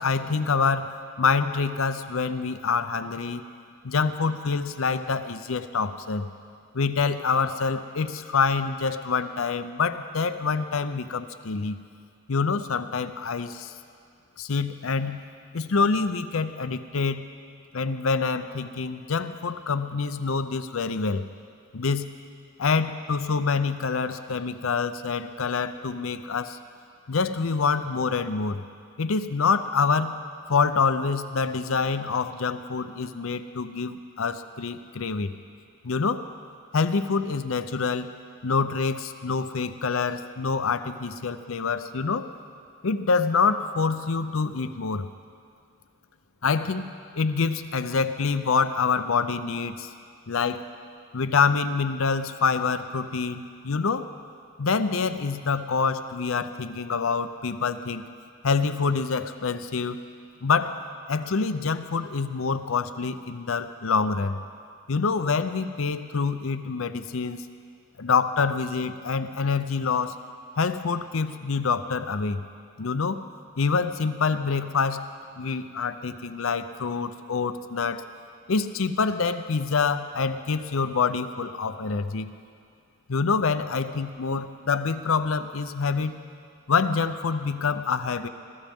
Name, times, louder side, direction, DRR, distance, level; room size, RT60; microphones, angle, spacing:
voice 1, 0.0-3.4 3.8-6.3 6.7-11.8 12.3-13.7 14.4-15.2 15.5-17.3 17.7-21.2 21.7-22.2 22.6-26.6 27.1-28.6 29.0-30.2 30.5-35.3 35.8-36.2 36.7-38.1 38.4-42.3 42.8-45.1 46.4-46.8 47.1-49.9 50.3-50.6 51.1-54.1 54.6-58.0 58.4-60.0 60.4-60.8 61.1-64.4 64.9-67.4 68.0-70.2 70.6-72.4 72.8-73.2 73.6-75.0 75.4-78.0 78.5-82.3 83.1-86.2 86.7-88.3, left 5 dB, 75° left, 11 dB, 0.6 m, -26 dB
20.5 x 14.5 x 3.6 m, 2.3 s
head